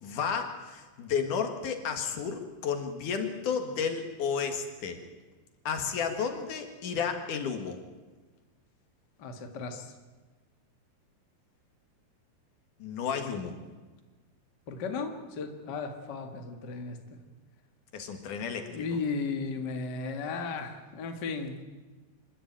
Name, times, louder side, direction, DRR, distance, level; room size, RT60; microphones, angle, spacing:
voice 1, 0.0-5.0 5.6-7.8 12.8-13.6 17.9-18.8, left 6 dB, 70° left, 6 dB, 3.2 m, -32 dB
voice 2, 9.2-9.9 14.7-17.2 18.7-21.6, left 4 dB, 40° left, 5 dB, 1.9 m, -35 dB
27.0 x 12.5 x 8.8 m, 1.3 s
omnidirectional pair, 3.8 m